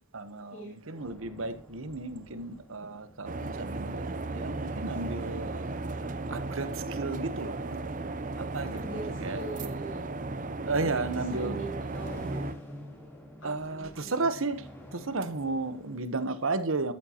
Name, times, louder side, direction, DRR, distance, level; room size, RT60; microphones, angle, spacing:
voice 1, 0.1-5.7 6.3-7.9 8.4-9.4 10.7-11.6 13.4-16.9, right 3 dB, 75° right, 1.2 m, -33 dB
sound 1, 0.9-16.0, equal, 10° left, 3.6 m, -50 dB
sound 2, 3.2-12.5, right 2 dB, 40° right, 0.7 m, -35 dB
voice 2, 8.7-10.0 10.7-12.4 13.4-14.2, right 2 dB, 65° left, 2.9 m, -42 dB
13.5 x 11.5 x 3.0 m
head